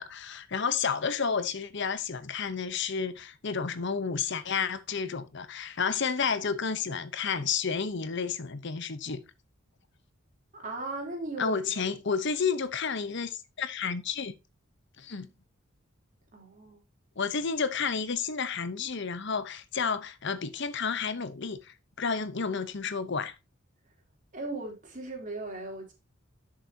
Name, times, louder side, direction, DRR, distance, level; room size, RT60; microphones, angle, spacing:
voice 1, 0.0-9.2 11.4-14.3 15.0-15.3 17.2-23.3, left 5 dB, 60° left, 0.9 m, -31 dB
voice 2, 10.5-11.9 16.3-16.8 24.3-25.9, right 2 dB, 40° right, 3.4 m, -37 dB
11.5 x 6.6 x 2.8 m
head